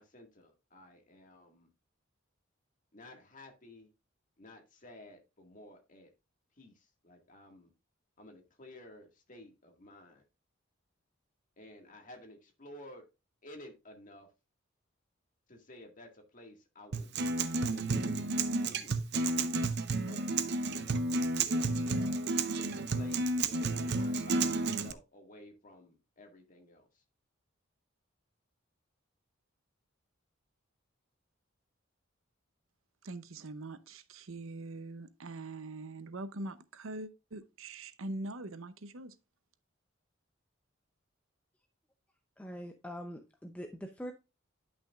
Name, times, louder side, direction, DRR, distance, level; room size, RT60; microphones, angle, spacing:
voice 1, 0.0-1.7 2.9-3.9 4.4-6.1 6.6-7.7 8.2-10.2 11.6-13.0 13.4-14.3 15.5-19.3 20.1-20.3 21.4-27.0, left 1 dB, 40° left, 1.9 m, -53 dB
Acoustic guitar, 16.9-24.9, right 3 dB, 55° right, 0.6 m, -31 dB
voice 2, 33.0-39.2, right 2 dB, 90° right, 0.8 m, -43 dB
voice 3, 42.4-44.1, equal, 5° left, 0.6 m, -43 dB
10.5 x 6.1 x 2.4 m
head